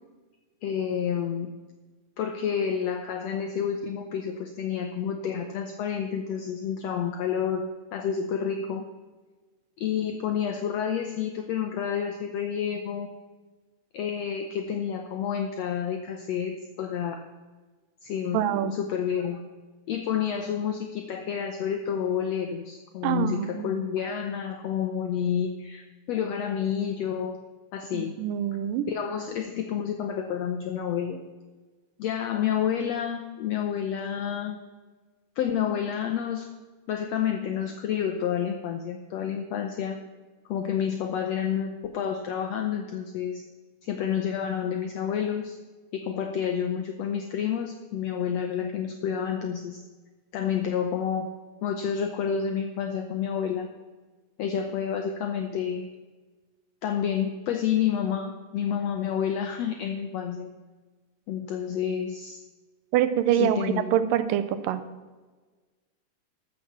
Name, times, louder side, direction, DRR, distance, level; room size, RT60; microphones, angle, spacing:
voice 1, 0.6-1.5 2.2-7.6 7.9-8.8 9.8-13.1 13.9-17.2 18.0-19.4 19.9-27.4 27.7-28.1 28.9-31.2 32.0-34.6 35.4-36.5 36.9-40.0 40.4-43.4 43.8-45.6 45.9-49.8 50.3-51.3 51.6-53.7 54.4-55.9 56.8-60.5 61.3-62.4 63.3-63.9, left 8 dB, 85° left, 6 dB, 1.5 m, -29 dB
voice 2, 18.3-18.7 23.0-23.8 27.9-28.9 62.9-64.8, right 11 dB, 85° right, 12 dB, 2.3 m, -25 dB
14.0 x 6.1 x 7.2 m, 1.3 s
omnidirectional pair, 3.8 m